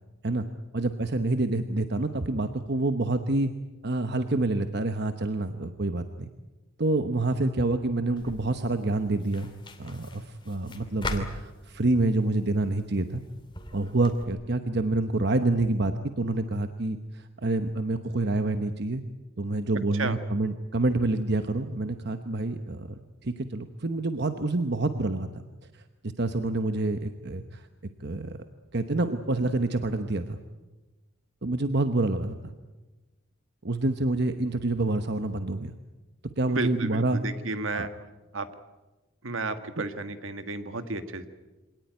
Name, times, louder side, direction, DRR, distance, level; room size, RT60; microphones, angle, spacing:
voice 1, 0.7-3.5 3.8-6.3 6.8-9.5 9.8-13.2 13.7-19.0 19.4-25.4 25.7-27.7 28.0-28.4 28.7-30.4 31.4-32.5 33.6-35.7 36.4-37.2 37.7-37.9, right 2 dB, 50° right, 8 dB, 1.0 m, -27 dB
sound 1, 8.2-14.2, left 2 dB, 20° left, 2.6 m, -41 dB
voice 2, 36.5-37.9 38.3-38.5 39.2-41.3, right 3 dB, 70° right, 9 dB, 1.6 m, -32 dB
25.5 x 18.5 x 9.4 m, 1.2 s
head